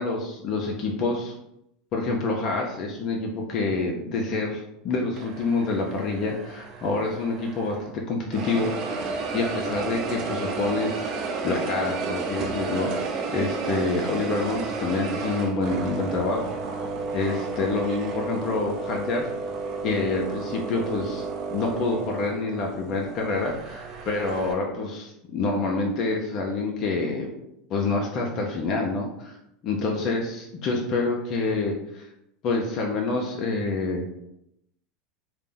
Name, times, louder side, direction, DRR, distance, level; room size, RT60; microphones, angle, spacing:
voice 1, 0.0-1.3 1.9-8.7 9.3-12.9 13.3-16.4 17.1-19.3 19.8-21.3 21.5-27.3 27.7-29.4 29.6-32.1 32.4-34.0, left 3 dB, 50° left, 0 dB, 0.5 m, -27 dB
sound 1, 5.1-7.9 8.3-24.5, right 4 dB, 50° right, 0.5 m, -32 dB
2.5 x 2.0 x 3.6 m, 0.81 s
supercardioid pair, 105°, 0 cm